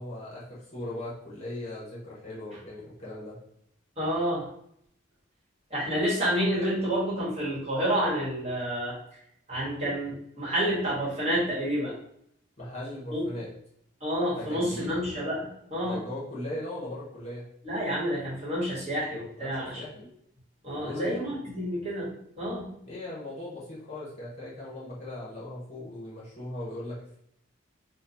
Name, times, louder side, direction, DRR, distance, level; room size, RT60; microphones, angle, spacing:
voice 1, 0.0-3.4 12.6-13.5 14.3-15.0 15.8-17.5 19.4-20.1 20.7-21.3 22.8-27.2, left 1 dB, 30° left, -7 dB, 1.2 m, -38 dB
voice 2, 4.0-4.5 5.7-9.0 9.5-11.9 13.1-13.3 14.0-16.0 17.6-19.8 20.6-22.7, equal, 30° right, -8 dB, 1.4 m, -29 dB
3.0 x 2.4 x 4.0 m, 0.71 s
head